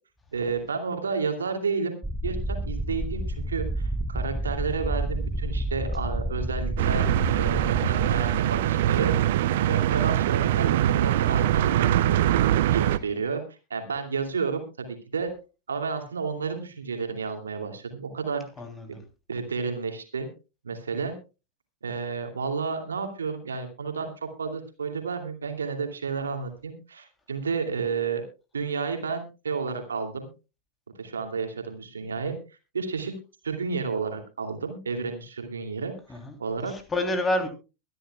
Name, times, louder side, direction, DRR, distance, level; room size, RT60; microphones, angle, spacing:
voice 1, 0.3-2.0 2.2-9.1 9.6-12.2 12.7-13.4 13.7-15.3 15.7-18.4 19.3-20.3 20.6-21.1 21.8-28.2 28.5-30.3 31.0-32.4 32.7-33.1 33.4-35.9 36.4-36.7, right 5 dB, 70° right, 5 dB, 2.7 m, -31 dB
sound 1, 2.0-9.6, right 1 dB, 5° right, 0.6 m, -31 dB
sound 2, 6.8-13.0, right 12 dB, 55° right, 0.7 m, -23 dB
voice 2, 18.6-19.0 36.1-37.5, left 1 dB, 15° left, 6 dB, 3.2 m, -29 dB
23.0 x 11.0 x 2.3 m, 0.31 s
figure-of-eight pair, 90°, 0 cm